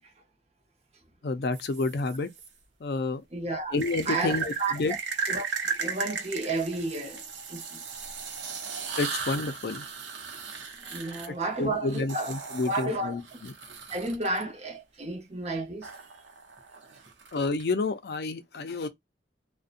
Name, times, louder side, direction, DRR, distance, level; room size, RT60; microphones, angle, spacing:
voice 1, 1.2-2.3 2.8-3.2 3.7-5.0 9.0-9.9 11.3-13.5 17.3-18.9, left 3 dB, 60° left, 0.4 m, -30 dB
sound 1, 1.5-2.5 3.8-14.4 15.8-17.6, right 5 dB, 85° right, 0.6 m, -37 dB
voice 2, 3.3-3.7 4.1-4.8 5.3-5.5 5.7-7.8 10.8-12.3 12.6-13.4 13.9-15.9, right 2 dB, 35° right, 0.7 m, -32 dB
2.6 x 2.1 x 2.4 m
head